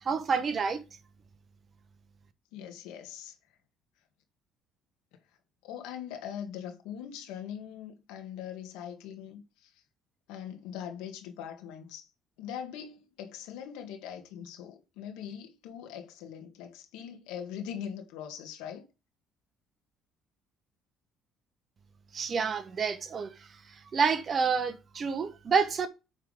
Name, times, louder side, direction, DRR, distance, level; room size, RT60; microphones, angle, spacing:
voice 1, 0.0-0.8 22.1-23.3 23.9-25.9, right 5 dB, 40° right, 1.2 m, -28 dB
voice 2, 2.5-3.4 5.6-9.7 10.3-12.1 12.4-18.9, left 9 dB, 90° left, 1.9 m, -41 dB
9.0 x 3.8 x 5.0 m
cardioid pair, 95°, 0 cm